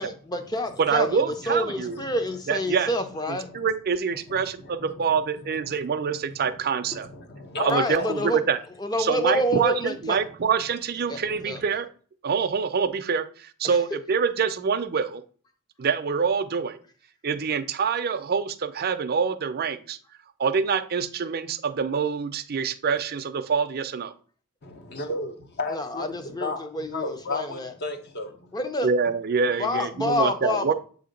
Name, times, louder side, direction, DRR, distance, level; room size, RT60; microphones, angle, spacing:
voice 1, 0.0-3.5 7.7-8.4 8.8-10.2 11.1-11.2 11.4-11.6 13.6-13.8 25.7-27.7 28.5-28.9 29.6-30.7, left 1 dB, 20° left, 0.6 m, -28 dB
voice 2, 0.8-2.0 2.5-2.9 3.3-7.1 7.6-8.6 9.0-11.9 12.2-15.2 15.8-16.8 17.2-20.0 20.4-24.1 28.8-30.7, right 6 dB, 45° right, 0.5 m, -26 dB
voice 3, 1.8-2.4 3.4-3.7 4.1-5.2 5.7-5.8 6.1-6.2 6.4-6.5 6.9-8.2 11.1-11.5 24.6-28.5, left 2 dB, 50° left, 0.8 m, -35 dB
7.5 x 2.8 x 5.1 m
head